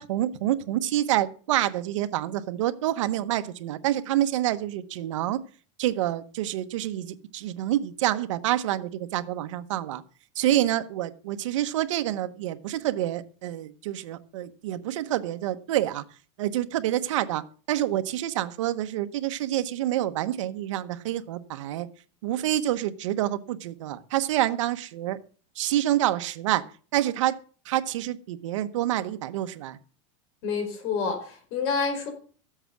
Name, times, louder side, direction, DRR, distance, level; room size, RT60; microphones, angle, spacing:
voice 1, 0.0-5.4 5.8-10.0 10.3-16.0 16.4-21.9 22.2-25.2 25.6-26.7 26.9-27.4 27.6-29.8, right 13 dB, 80° right, 10 dB, 1.1 m, -27 dB
voice 2, 30.4-32.1, left 5 dB, 55° left, 5 dB, 5.1 m, -28 dB
14.0 x 8.0 x 6.0 m, 0.41 s
supercardioid pair, 160°, 16 cm